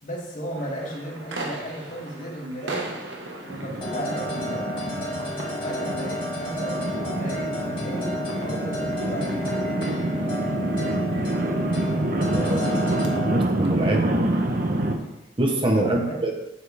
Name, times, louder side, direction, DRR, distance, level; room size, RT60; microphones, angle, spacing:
voice 1, 0.0-2.9 3.4-4.8 5.6-9.6 12.3-12.9 15.0-15.1 15.7-16.2, right 1 dB, 45° left, -3 dB, 3.0 m, -35 dB
sound 1, 0.6-14.8, right 2 dB, 85° right, 1.5 m, -40 dB
sound 2, 3.5-14.9, right 1 dB, 50° right, 1.0 m, -27 dB
sound 3, 3.8-13.4, left 1 dB, 30° left, 2.3 m, -32 dB
voice 2, 13.3-14.1 15.4-16.3, right 1 dB, 30° right, 1 dB, 1.1 m, -24 dB
8.9 x 8.8 x 3.5 m, 0.91 s
head